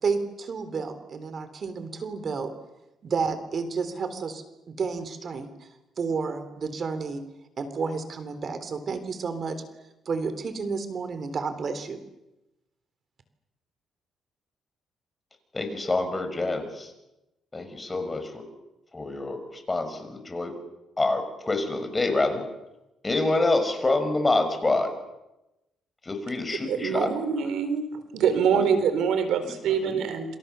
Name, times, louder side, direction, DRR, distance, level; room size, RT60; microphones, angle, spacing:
voice 1, 0.0-2.5 3.0-5.7 6.0-7.2 7.6-9.6 10.0-12.0, right 5 dB, 50° right, 10 dB, 3.6 m, -31 dB
voice 2, 15.5-16.9 17.5-18.5 18.9-20.5 21.0-22.4 23.0-24.9 26.0-27.1 28.5-28.7 29.8-30.0, left 2 dB, 20° left, 7 dB, 6.0 m, -26 dB
voice 3, 26.6-27.9 28.1-30.4, right 7 dB, 80° right, 10 dB, 4.0 m, -24 dB
27.5 x 27.5 x 7.0 m, 0.96 s
cardioid pair, 90°, 0 cm